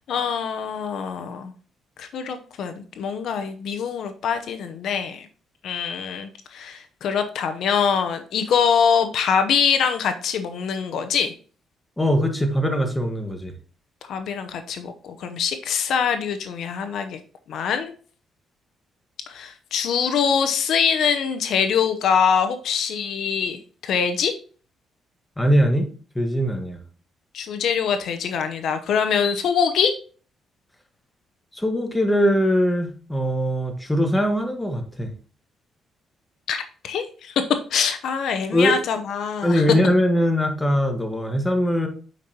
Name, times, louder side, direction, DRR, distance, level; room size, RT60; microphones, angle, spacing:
voice 1, 0.0-1.5 2.0-5.3 5.6-11.3 14.1-17.2 17.5-17.9 19.3-24.3 27.3-29.9 36.5-37.3 37.7-39.6, left 7 dB, 75° left, 8 dB, 0.8 m, -24 dB
voice 2, 12.0-13.5 25.4-25.9 26.1-26.8 31.5-35.1 38.5-38.7 39.4-41.9, equal, 10° left, 5 dB, 1.3 m, -21 dB
8.2 x 5.3 x 2.9 m, 0.40 s
cardioid pair, 90°, 0 cm